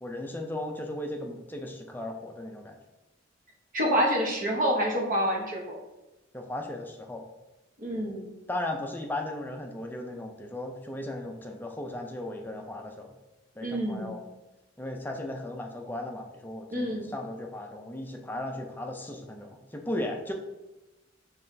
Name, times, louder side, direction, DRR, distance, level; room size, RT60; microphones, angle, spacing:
voice 1, 0.0-2.8 6.3-7.2 8.5-13.1 13.6-14.2 14.8-20.3, left 1 dB, 10° left, 3 dB, 0.4 m, -36 dB
voice 2, 3.7-5.8 7.8-8.2 13.6-14.2 16.7-17.1, equal, 45° right, -1 dB, 0.9 m, -27 dB
4.7 x 3.2 x 2.6 m, 1.0 s
head